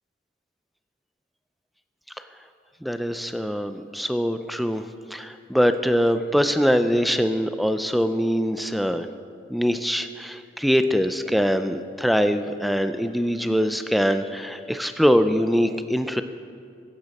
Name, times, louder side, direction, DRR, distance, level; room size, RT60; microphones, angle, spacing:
voice 1, 2.8-4.9 5.1-9.1 9.5-16.2, equal, ahead, 9 dB, 0.4 m, -23 dB
15.0 x 11.5 x 4.2 m, 2.4 s
head